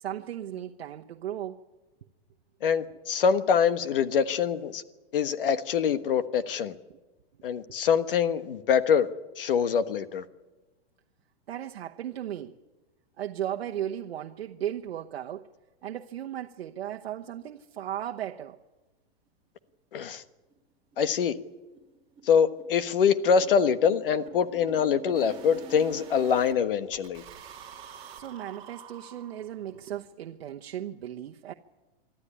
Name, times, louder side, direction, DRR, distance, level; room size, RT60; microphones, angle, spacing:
voice 1, 0.0-1.6 6.9-7.0 11.5-12.6 13.2-15.5 15.8-18.6 28.1-31.5, right 11 dB, 75° right, 1.1 m, -36 dB
voice 2, 2.6-4.8 5.1-6.7 7.4-9.1 9.4-10.2 19.9-20.2 21.0-21.4 22.2-27.2, left 7 dB, 60° left, 1.4 m, -24 dB
sound 1, 19.7-19.8 20.1-20.2 20.5-20.6 20.9-21.1 21.3-26.5 26.9-29.7, right 5 dB, 15° right, 2.8 m, -48 dB
25.5 x 13.0 x 9.9 m
supercardioid pair, 180°, 31 cm